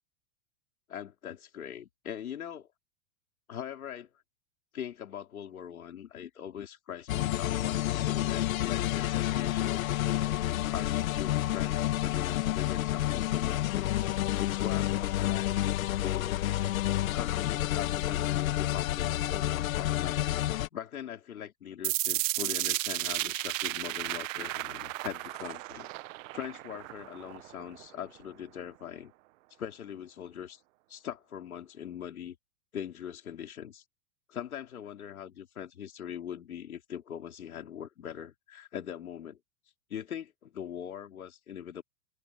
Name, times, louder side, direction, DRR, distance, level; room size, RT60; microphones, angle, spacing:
voice 1, 0.9-2.7 3.5-4.1 4.7-13.9 14.4-16.4 17.1-20.5 20.7-25.9 26.3-29.1 29.6-30.6 30.9-32.3 32.7-33.8 34.3-39.4 39.9-41.8, left 9 dB, 90° left, 4.2 m, -41 dB
sound 1, 7.1-20.7, left 14 dB, 75° left, 2.1 m, -29 dB
sound 2, 21.8-27.8, right 18 dB, 65° right, 1.1 m, -34 dB
open air
hypercardioid pair, 110°, 42 cm